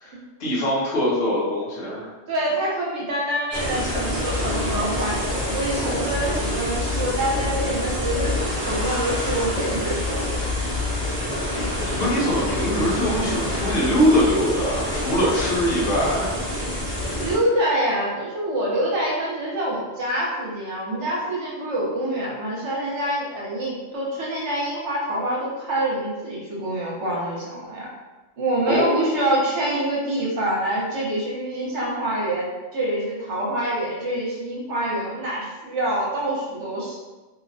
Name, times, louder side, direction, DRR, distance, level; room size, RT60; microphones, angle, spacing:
voice 1, 0.4-2.1 11.9-16.3 28.6-28.9, equal, 55° left, -6 dB, 0.9 m, -22 dB
voice 2, 2.3-8.4 8.7-10.2 17.2-27.9 28.4-32.5 32.7-37.0, right 1 dB, 65° right, -5 dB, 1.0 m, -26 dB
sound 1, 3.5-17.4, left 1 dB, 35° right, 0.7 m, -26 dB
2.6 x 2.1 x 2.6 m, 1.2 s
omnidirectional pair, 1.4 m